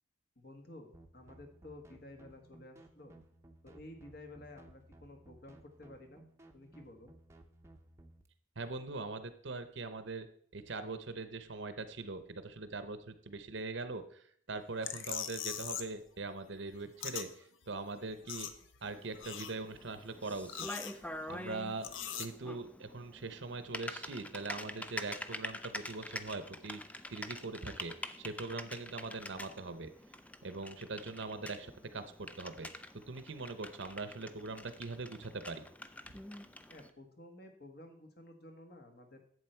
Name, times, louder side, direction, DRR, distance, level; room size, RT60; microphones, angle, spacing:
voice 1, 0.3-3.2 3.6-6.2 6.5-7.1 36.7-39.2, left 1 dB, 50° left, 4 dB, 1.5 m, -53 dB
sound 1, 0.9-8.3, right 1 dB, 15° right, 0.8 m, -59 dB
voice 2, 8.6-10.3 10.5-18.5 18.8-21.0 21.3-21.9 22.2-26.8 27.1-29.9 30.4-32.7 33.1-35.7, right 3 dB, 60° right, 11 dB, 0.9 m, -42 dB
sound 2, 14.8-16.0 16.3-17.3 17.6-17.7 18.0-18.9 19.1-19.9 20.3-21.4 21.8-22.3, left 9 dB, 70° left, 0.7 m, -41 dB
Typing, 18.8-36.9, left 1 dB, 5° left, 0.4 m, -46 dB
11.5 x 8.0 x 4.5 m, 0.62 s
head